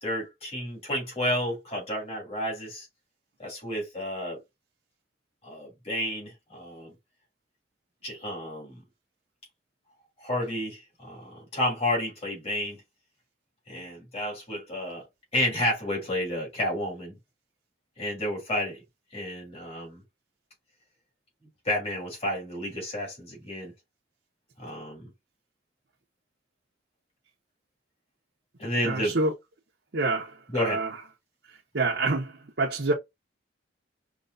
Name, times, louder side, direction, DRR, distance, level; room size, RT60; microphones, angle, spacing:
voice 1, 0.0-2.9 3.4-4.4 5.4-6.9 8.0-8.8 10.2-12.8 13.7-15.0 15.3-17.2 18.0-18.8 19.1-20.0 21.6-23.7 24.6-25.1 28.6-29.2 30.5-30.8, left 1 dB, 35° left, 2.9 m, -31 dB
voice 2, 28.8-29.3 29.9-30.9 31.7-32.9, right 3 dB, 65° right, 0.9 m, -27 dB
5.4 x 2.9 x 2.7 m
head